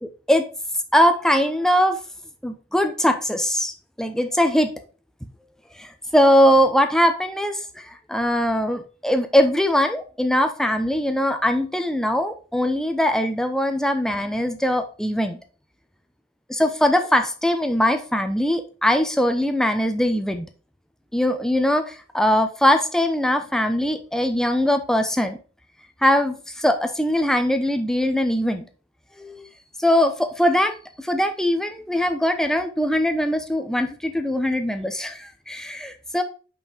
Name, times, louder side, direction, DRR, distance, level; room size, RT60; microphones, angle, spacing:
voice 1, 0.9-2.0 2.4-4.7 5.8-15.4 16.5-20.5 21.1-25.4 26.0-28.7 29.2-29.4 29.8-36.2, equal, 5° left, 7 dB, 0.7 m, -21 dB
5.5 x 5.4 x 5.1 m, 0.37 s
head